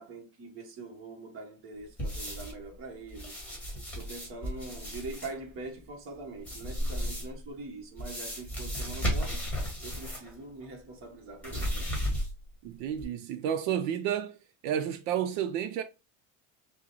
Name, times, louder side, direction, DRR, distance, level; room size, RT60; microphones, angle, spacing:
voice 1, 0.0-3.4 3.9-9.4 9.8-12.0, right 3 dB, 35° right, 1.1 m, -43 dB
sound 1, 2.0-2.6 3.1-5.3 6.4-7.4 8.0-10.3 10.6-10.7 11.4-12.5 12.9-13.0, equal, 5° left, 1.4 m, -34 dB
voice 2, 12.6-14.4 14.6-15.8, right 9 dB, 85° right, 0.6 m, -31 dB
6.0 x 2.2 x 2.9 m
cardioid pair, 165°, 35 cm